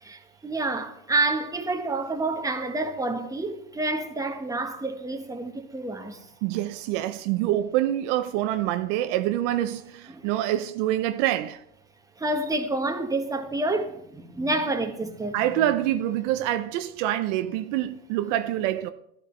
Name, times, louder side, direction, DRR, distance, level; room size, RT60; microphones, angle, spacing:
voice 1, 0.0-6.2 10.1-10.3 12.2-15.4, right 2 dB, 10° right, 1.3 m, -28 dB
voice 2, 6.4-11.6 15.3-18.9, right 13 dB, 60° right, 0.7 m, -26 dB
13.0 x 12.0 x 3.3 m
hypercardioid pair, 100°, 41 cm